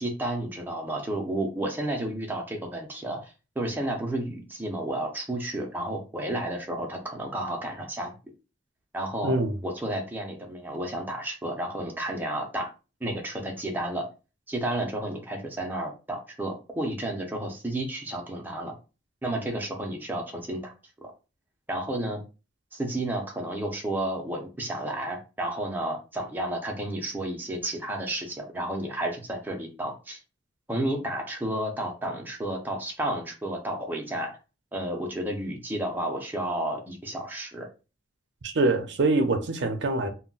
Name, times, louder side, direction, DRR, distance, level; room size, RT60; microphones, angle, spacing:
voice 1, 0.0-8.1 8.9-9.4 9.6-12.7 13.0-14.1 14.5-18.7 19.2-20.7 21.0-21.1 21.7-22.2 22.7-30.2 30.7-34.3 34.7-37.7, right 1 dB, 10° right, 0.5 m, -31 dB
voice 2, 9.2-9.6 38.4-40.1, right 2 dB, 70° right, 0.5 m, -24 dB
2.2 x 2.1 x 3.8 m
head